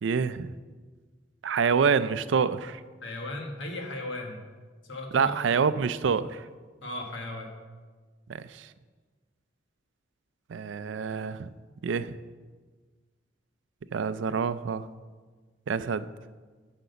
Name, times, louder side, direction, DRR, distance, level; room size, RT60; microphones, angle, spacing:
voice 1, 0.0-0.5 1.4-2.8 5.1-6.4 8.3-8.7 10.5-11.5 11.8-12.2 13.9-14.9 15.7-16.1, right 6 dB, 75° right, 14 dB, 0.4 m, -27 dB
voice 2, 3.0-4.4 4.9-5.6 6.8-7.6, left 1 dB, 75° left, 2 dB, 1.4 m, -36 dB
7.8 x 6.0 x 6.8 m, 1.4 s
head